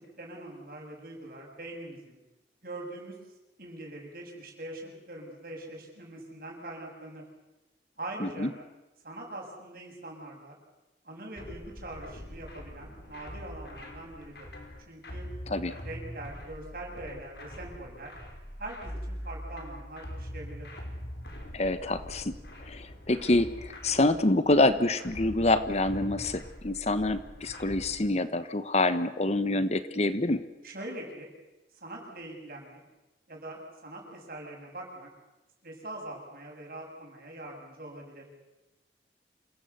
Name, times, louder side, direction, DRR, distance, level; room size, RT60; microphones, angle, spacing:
voice 1, 0.0-2.2 2.6-3.1 3.6-7.2 8.0-8.5 9.0-10.6 11.0-14.5 14.9-15.3 15.8-18.1 18.6-20.7 30.6-31.3 31.8-32.8 33.3-35.1 35.6-38.3, right 1 dB, 55° right, 0 dB, 7.3 m, -43 dB
sound 1, 11.4-28.0, equal, 65° left, 5.0 m, -43 dB
voice 2, 21.5-22.4 22.6-30.4, left 2 dB, 40° left, 12 dB, 1.1 m, -26 dB
27.5 x 17.0 x 8.3 m, 1.0 s
head